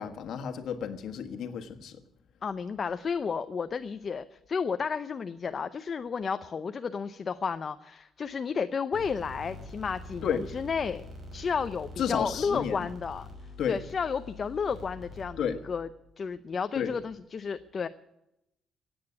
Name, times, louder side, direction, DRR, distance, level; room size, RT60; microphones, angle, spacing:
voice 1, 0.0-2.0 10.2-10.5 12.0-12.9 13.6-13.8 15.4-15.6 16.7-16.9, left 7 dB, 65° left, 6 dB, 1.5 m, -32 dB
voice 2, 2.4-11.0 11.3-13.3 13.7-15.9 16.2-17.9, left 6 dB, 35° left, 11 dB, 0.6 m, -32 dB
sound 1, 8.9-15.8, left 2 dB, 35° right, 5.7 m, -45 dB
16.5 x 8.8 x 9.7 m, 0.86 s
cardioid pair, 140°, 0 cm